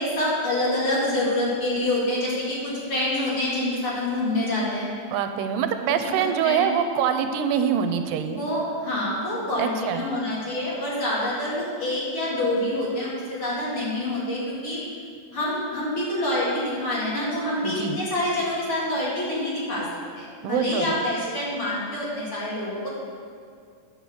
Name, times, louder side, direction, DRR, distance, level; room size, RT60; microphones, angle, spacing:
voice 1, 0.0-4.9 6.2-6.6 8.3-14.8 15.3-19.9 20.2-22.9, left 1 dB, 45° left, -7 dB, 2.8 m, -26 dB
voice 2, 5.1-8.4 9.6-10.0 17.6-18.0 20.4-21.0, right 8 dB, 90° right, 8 dB, 2.3 m, -25 dB
9.5 x 6.3 x 6.8 m, 2.2 s
omnidirectional pair, 4.0 m